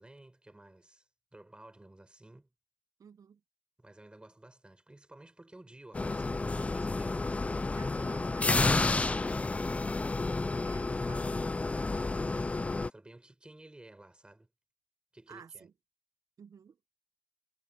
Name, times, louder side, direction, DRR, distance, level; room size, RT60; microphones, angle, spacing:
voice 1, 0.0-2.5 3.8-7.2 9.6-10.0 12.7-14.5 15.1-15.7, right 1 dB, 10° right, 4.5 m, -54 dB
voice 2, 3.0-3.4 7.8-8.5 10.6-11.5 15.3-15.7 16.4-16.8, right 7 dB, 40° right, 1.1 m, -53 dB
sound 1, 5.9-12.9, left 3 dB, 15° left, 0.5 m, -31 dB
supercardioid pair, 80°, 9 cm